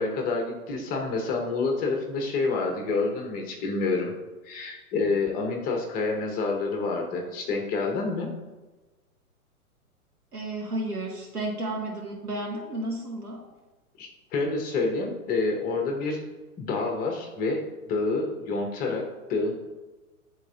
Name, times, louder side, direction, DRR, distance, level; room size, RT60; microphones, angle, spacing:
voice 1, 0.0-4.1 4.4-8.3 14.0-16.2 16.6-19.6, left 3 dB, 20° left, 2 dB, 0.7 m, -28 dB
voice 2, 10.3-13.4, right 1 dB, 85° right, -2 dB, 1.9 m, -32 dB
10.5 x 3.6 x 2.6 m, 1.2 s
figure-of-eight pair, 110°, 45 cm